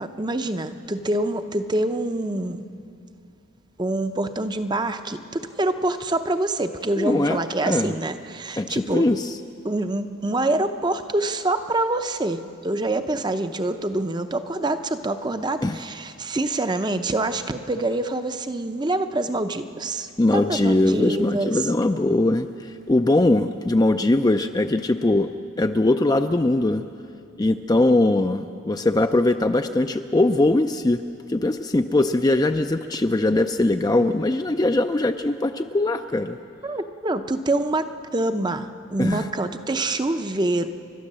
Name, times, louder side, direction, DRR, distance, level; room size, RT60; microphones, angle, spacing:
voice 1, 0.0-2.6 3.8-9.1 9.6-21.6 36.6-40.7, right 2 dB, 20° right, 9 dB, 0.6 m, -26 dB
voice 2, 7.0-7.9 8.6-9.3 15.6-15.8 20.2-25.3 25.6-26.8 27.4-31.0 31.3-36.4 39.0-39.3, left 2 dB, 20° left, 7 dB, 0.4 m, -21 dB
30.0 x 12.0 x 7.5 m, 2.5 s
head